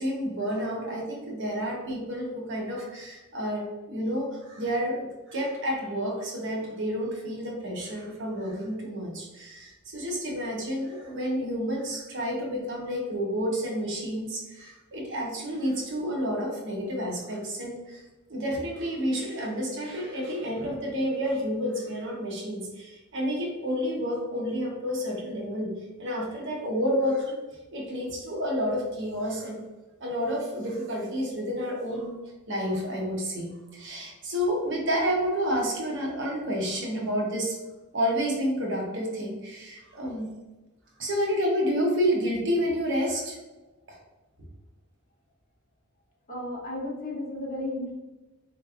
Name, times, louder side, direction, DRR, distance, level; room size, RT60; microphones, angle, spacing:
voice 1, 0.0-18.0 18.3-25.7 26.0-27.4 27.7-29.6 30.0-32.2 32.5-37.6 37.9-40.3 41.0-43.4 43.9-44.0, equal, 60° right, -1 dB, 0.9 m, -30 dB
voice 2, 46.3-47.9, left 1 dB, 40° left, -4 dB, 1.1 m, -33 dB
4.1 x 3.2 x 2.4 m, 1.1 s
head